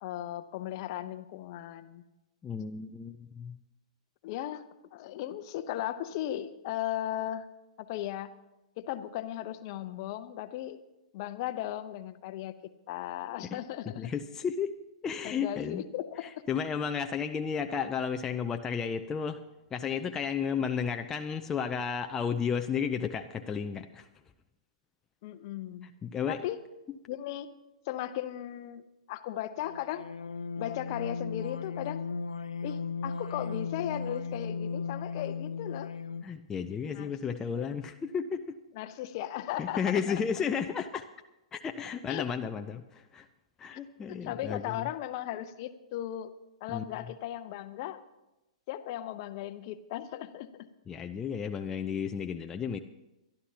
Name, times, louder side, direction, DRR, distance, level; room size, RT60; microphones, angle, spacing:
voice 1, 0.0-2.0 4.2-4.6 4.9-7.5 7.8-8.3 8.8-10.8 11.1-12.5 12.9-14.1 15.2-16.3 25.2-25.9 26.3-26.6 27.1-27.5 27.9-28.8 29.1-30.0 30.6-32.0 32.6-35.9 36.9-37.6 38.7-40.2 42.1-42.3 43.7-43.8 44.1-46.3 46.6-48.0 48.7-50.7, left 12 dB, 45° left, 12 dB, 0.8 m, -37 dB
voice 2, 2.4-3.6 13.5-13.6 14.0-14.7 15.0-15.8 16.2-19.4 19.7-24.1 25.8-26.4 36.2-38.6 39.6-41.0 41.5-43.3 43.6-44.7 46.7-46.8 50.9-52.8, left 6 dB, 15° left, 6 dB, 0.6 m, -33 dB
sound 1, 29.6-36.4, left 5 dB, 80° left, 0.5 m, -36 dB
24.0 x 11.5 x 2.9 m, 0.96 s
figure-of-eight pair, 110°, 3 cm